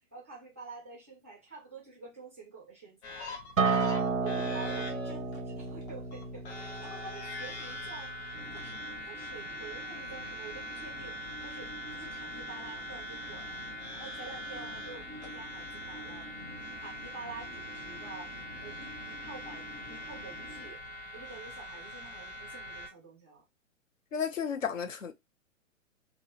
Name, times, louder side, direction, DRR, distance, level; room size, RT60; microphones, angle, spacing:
voice 1, 0.1-3.3 3.6-8.1 8.5-11.2 11.4-13.6 13.9-16.3 16.8-20.8 21.1-23.4, right 4 dB, 10° right, 0.3 m, -48 dB
sound 1, 3.0-22.9, left 1 dB, 55° left, 1.0 m, -43 dB
Acoustic guitar, 3.6-8.8, right 4 dB, 85° right, 0.6 m, -32 dB
sound 2, 8.3-20.7, left 1 dB, 35° left, 1.2 m, -50 dB
voice 2, 24.1-25.1, left 7 dB, 75° left, 0.6 m, -33 dB
2.6 x 2.0 x 2.7 m
figure-of-eight pair, 115°, 40 cm